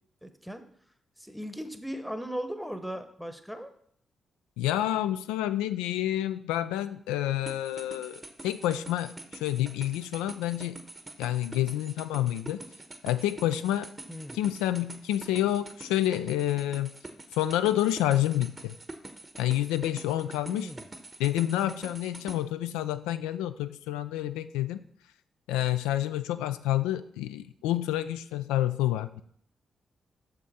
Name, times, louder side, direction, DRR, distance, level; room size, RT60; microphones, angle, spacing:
voice 1, 0.2-0.6 1.2-3.7 14.1-14.4 20.4-20.8, equal, ahead, 8 dB, 0.9 m, -38 dB
voice 2, 4.6-10.8 11.2-12.6 13.0-13.9 14.3-16.9 17.3-18.8 19.4-20.7 21.2-24.8 25.5-29.2, left 13 dB, 85° left, 11 dB, 0.3 m, -28 dB
sound 1, 7.5-22.4, right 2 dB, 30° right, 1.0 m, -45 dB
6.4 x 5.9 x 4.1 m, 0.64 s
hypercardioid pair, 40°, 0 cm